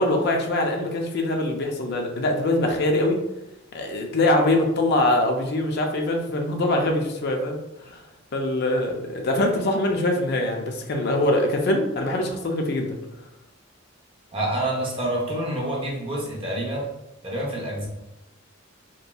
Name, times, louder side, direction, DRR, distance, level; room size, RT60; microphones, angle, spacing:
voice 1, 0.0-3.2 3.7-8.0 8.3-13.0, left 1 dB, 55° left, 2 dB, 0.5 m, -23 dB
voice 2, 14.3-16.9 17.2-17.9, right 1 dB, 30° right, -2 dB, 0.7 m, -27 dB
3.0 x 2.5 x 2.2 m, 0.89 s
head